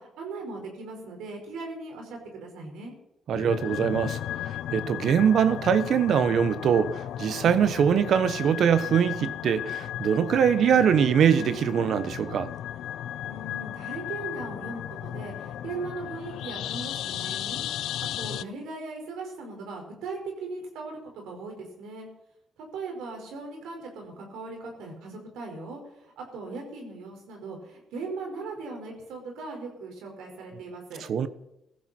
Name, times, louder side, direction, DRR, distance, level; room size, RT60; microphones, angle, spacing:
voice 1, 0.0-2.9 13.2-17.6 18.2-22.1 22.6-31.0, right 3 dB, 90° right, 5.0 m, -39 dB
sound 1, 3.3-18.4, left 11 dB, 80° left, 0.5 m, -35 dB
voice 2, 3.3-4.2 4.7-12.5 31.1-31.3, right 8 dB, 65° right, 1.0 m, -22 dB
17.5 x 14.5 x 4.4 m
cardioid pair, 90°, 0 cm